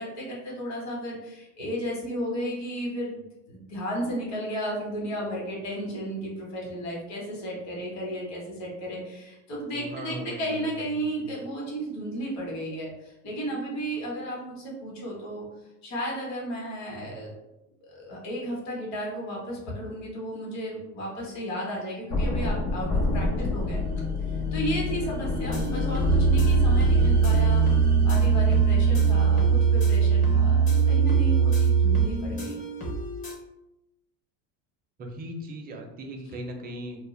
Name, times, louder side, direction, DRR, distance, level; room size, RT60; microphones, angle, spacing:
voice 1, 0.0-15.5 15.8-17.3 17.8-23.8 24.3-27.6 28.0-32.6, equal, 45° left, -3 dB, 1.2 m, -34 dB
voice 2, 9.7-11.3 23.3-23.5 35.0-37.0, right 1 dB, 25° right, 3 dB, 0.5 m, -39 dB
sound 1, 22.1-31.0, left 4 dB, 80° left, 0.9 m, -28 dB
sound 2, 25.4-33.4, right 1 dB, 20° left, 0.6 m, -34 dB
sound 3, 26.1-32.1, right 7 dB, 80° right, 0.6 m, -21 dB
2.3 x 2.1 x 3.1 m, 0.91 s
supercardioid pair, 115°, 38 cm